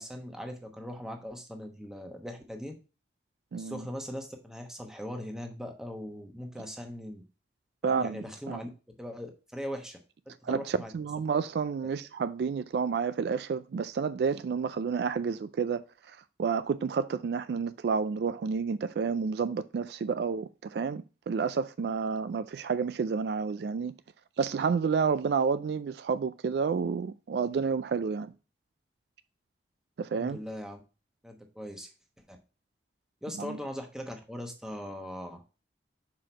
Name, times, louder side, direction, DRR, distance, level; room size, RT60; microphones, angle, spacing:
voice 1, 0.0-2.7 3.5-7.2 7.8-8.7 9.0-10.0 10.5-10.9 30.1-30.8 31.2-31.9 32.3-32.4 33.2-35.4, equal, 5° right, 1.0 m, -40 dB
voice 2, 3.5-3.8 7.8-8.6 10.4-23.9 24.4-28.3 30.0-30.4 33.4-33.6, right 5 dB, 65° right, 0.3 m, -30 dB
5.9 x 4.8 x 4.5 m
head